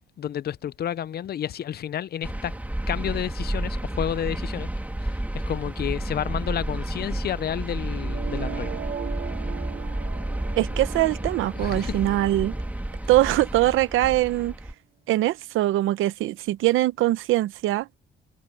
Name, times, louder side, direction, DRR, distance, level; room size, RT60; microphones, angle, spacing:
voice 1, 0.2-2.5 2.9-4.7 5.0-5.2 5.5-8.7 11.6-12.0, left 10 dB, 50° left, 0.6 m, -30 dB
sound 1, 2.2-14.7, right 1 dB, 10° right, 2.7 m, -31 dB
sound 2, 7.9-13.9, right 9 dB, 50° right, 1.1 m, -40 dB
voice 2, 10.6-12.5 13.1-14.6 15.1-17.9, right 15 dB, 90° right, 0.9 m, -22 dB
cardioid pair, 90°, 20 cm